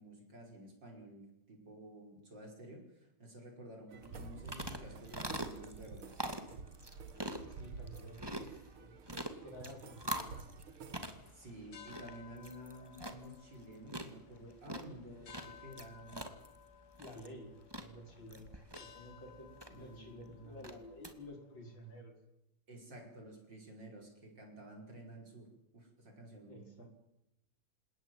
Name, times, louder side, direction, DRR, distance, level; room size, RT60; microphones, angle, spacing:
voice 1, 0.0-6.4 11.3-16.3 19.7-20.8 22.7-26.9, right 1 dB, 55° right, 3 dB, 6.1 m, -52 dB
sound 1, 3.9-11.0, right 4 dB, 70° right, 2.7 m, -50 dB
sound 2, 4.0-21.1, right 1 dB, 10° right, 2.2 m, -46 dB
voice 2, 7.6-9.0 9.4-10.5 17.0-22.1 26.5-26.9, equal, 60° left, 3 dB, 5.9 m, -52 dB
sound 3, 11.1-22.0, left 8 dB, 85° left, 2.9 m, -59 dB
28.0 x 18.0 x 9.3 m, 0.85 s
omnidirectional pair, 2.4 m